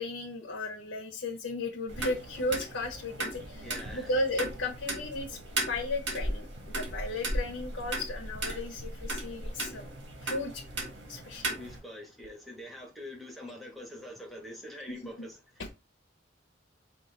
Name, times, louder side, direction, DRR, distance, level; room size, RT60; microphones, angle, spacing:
voice 1, 0.0-3.7 3.9-5.4 5.7-9.9 10.2-10.6 11.1-11.6 14.9-15.3 15.6-15.7, left 2 dB, 85° left, 0.9 m, -35 dB
sound 1, 1.9-11.8, right 1 dB, 70° right, 1.7 m, -36 dB
voice 2, 3.6-4.1 11.6-15.4, left 1 dB, ahead, 1.2 m, -44 dB
5.3 x 2.5 x 3.8 m
head